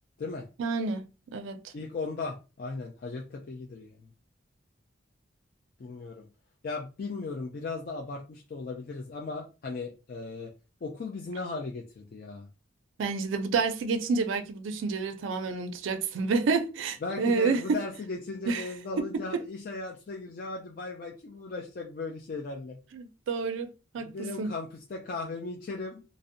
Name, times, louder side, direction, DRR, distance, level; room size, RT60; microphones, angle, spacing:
voice 1, 0.6-1.1 1.3-1.7 13.0-17.8 18.5-18.7 19.3-19.4 22.9-24.1 24.4-24.5, right 4 dB, 80° right, 0.4 m, -29 dB
voice 2, 1.7-4.1 5.8-6.2 6.6-10.5 10.8-12.5 17.0-22.8 24.0-26.0, left 3 dB, 50° left, 0.3 m, -37 dB
2.5 x 2.0 x 2.5 m
head